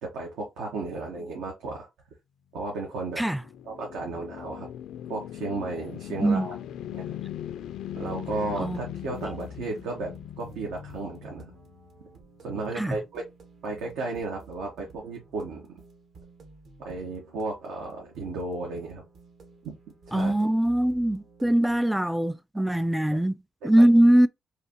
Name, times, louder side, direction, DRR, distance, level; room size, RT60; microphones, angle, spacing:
voice 1, 0.0-1.9 2.5-3.2 3.6-4.7 5.1-6.5 6.9-7.1 8.0-11.5 12.4-13.2 13.6-15.8 16.8-19.0 19.6-19.7 20.1-20.3 23.1-23.2 23.6-23.9, right 3 dB, 90° right, 1.2 m, -34 dB
sound 1, 2.7-12.0, left 11 dB, 80° left, 0.4 m, -39 dB
sound 2, 9.1-21.8, right 4 dB, 65° right, 1.2 m, -53 dB
voice 2, 20.1-23.4 23.6-24.3, right 1 dB, 5° right, 0.4 m, -21 dB
4.8 x 2.7 x 3.0 m
cardioid pair, 90°, 0 cm